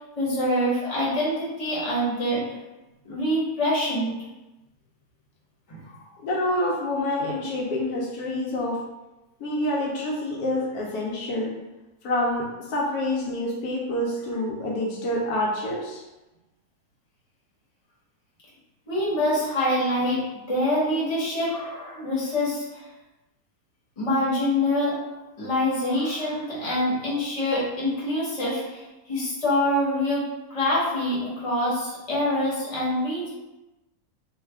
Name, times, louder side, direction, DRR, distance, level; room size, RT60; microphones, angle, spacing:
voice 1, 0.2-2.4 3.0-4.1 5.7-6.0 18.9-20.2 20.5-22.8 24.0-25.0 25.4-28.8 29.1-30.2 30.5-33.3, left 1 dB, 25° left, -7 dB, 0.9 m, -25 dB
voice 2, 6.2-8.8 9.4-11.5 12.0-16.0, left 1 dB, 80° left, -2 dB, 1.2 m, -27 dB
3.1 x 2.2 x 3.3 m, 1.0 s
omnidirectional pair, 1.6 m